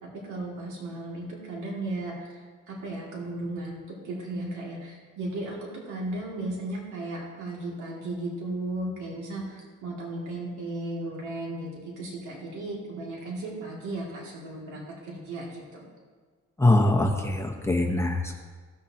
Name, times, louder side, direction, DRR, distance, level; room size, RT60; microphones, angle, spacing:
voice 1, 0.0-15.8, right 2 dB, 75° right, -4 dB, 2.5 m, -35 dB
voice 2, 16.6-18.4, left 2 dB, 10° left, 0 dB, 1.0 m, -23 dB
16.0 x 6.5 x 2.9 m, 1.5 s
cardioid pair, 90°, 30 cm